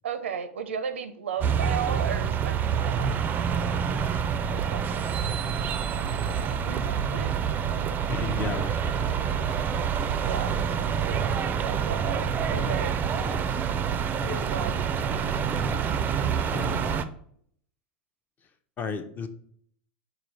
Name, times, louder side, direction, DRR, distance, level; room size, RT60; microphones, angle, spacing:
voice 1, 0.0-3.2 4.5-5.0 5.6-5.7 6.0-8.0 10.2-13.0 14.2-14.8, right 7 dB, 90° right, 9 dB, 0.5 m, -36 dB
sound 1, 1.4-17.0, right 7 dB, 30° right, 0.4 m, -27 dB
voice 2, 8.1-9.5 14.2-14.4 15.5-16.1 16.5-17.1 18.8-19.3, left 6 dB, 30° left, 10 dB, 0.5 m, -36 dB
4.9 x 2.3 x 4.4 m, 0.64 s
hypercardioid pair, 105°, 6 cm